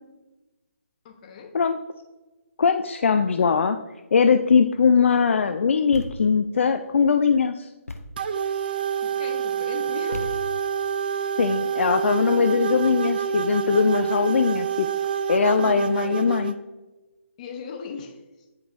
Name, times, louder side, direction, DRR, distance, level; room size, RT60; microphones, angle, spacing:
voice 1, 1.0-1.6 9.0-10.5 15.6-16.3 17.4-18.5, left 5 dB, 30° left, 4 dB, 0.9 m, -39 dB
voice 2, 2.6-3.8 4.1-7.7 11.4-14.9 15.3-16.5, left 6 dB, 60° left, 8 dB, 0.4 m, -21 dB
Thump thud, 5.9-6.5 7.9-8.3 10.1-10.8, left 1 dB, 90° left, 0.7 m, -37 dB
sound 1, 8.2-16.5, right 8 dB, 40° right, 0.4 m, -27 dB
10.0 x 4.8 x 2.6 m, 1.1 s
figure-of-eight pair, 145°, 8 cm